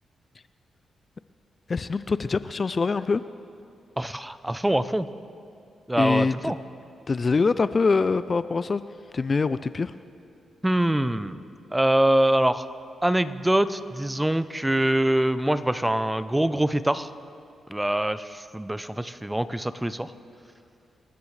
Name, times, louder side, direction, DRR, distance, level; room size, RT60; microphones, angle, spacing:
voice 1, 1.7-3.2 6.0-6.5 7.1-8.8 9.1-9.9, left 4 dB, 40° left, 14 dB, 0.4 m, -24 dB
voice 2, 4.0-5.1 5.9-6.6 10.6-11.4 11.7-12.7 13.0-17.1 17.7-20.1, right 1 dB, 10° right, 13 dB, 0.6 m, -24 dB
28.0 x 14.5 x 3.3 m, 2.6 s
cardioid pair, 75°, 0 cm